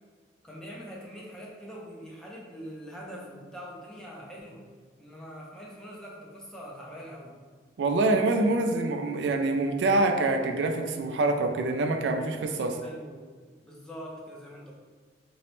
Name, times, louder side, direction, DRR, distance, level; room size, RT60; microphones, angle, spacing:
voice 1, 0.4-4.7 5.0-7.4 12.8-13.3 13.6-14.7, equal, 5° left, -4 dB, 0.5 m, -43 dB
voice 2, 7.8-12.8, right 2 dB, 75° right, 4 dB, 0.4 m, -25 dB
3.0 x 3.0 x 3.0 m, 1.5 s
head